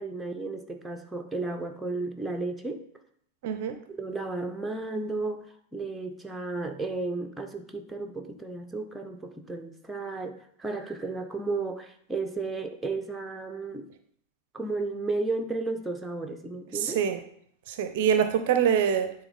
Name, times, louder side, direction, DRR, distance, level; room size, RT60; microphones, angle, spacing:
voice 1, 0.0-2.8 3.9-5.5 5.7-13.9 14.5-17.0, right 3 dB, 5° right, 4 dB, 0.7 m, -33 dB
voice 2, 3.4-3.8 16.7-17.2 17.7-19.1, right 8 dB, 50° right, 9 dB, 0.5 m, -25 dB
9.1 x 3.5 x 3.6 m, 0.66 s
figure-of-eight pair, 90°, 0 cm